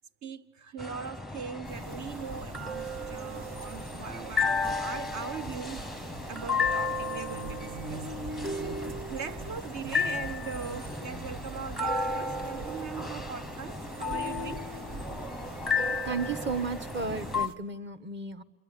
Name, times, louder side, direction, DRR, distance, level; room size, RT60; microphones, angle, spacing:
voice 1, 0.2-14.7, right 6 dB, 55° right, 1.4 m, -41 dB
sound 1, 0.8-17.5, left 3 dB, ahead, 0.9 m, -34 dB
sound 2, 1.7-17.6, right 3 dB, 75° right, 2.0 m, -43 dB
voice 2, 16.0-18.4, right 4 dB, 30° right, 1.5 m, -33 dB
27.0 x 23.5 x 8.6 m
cardioid pair, 115°, 35 cm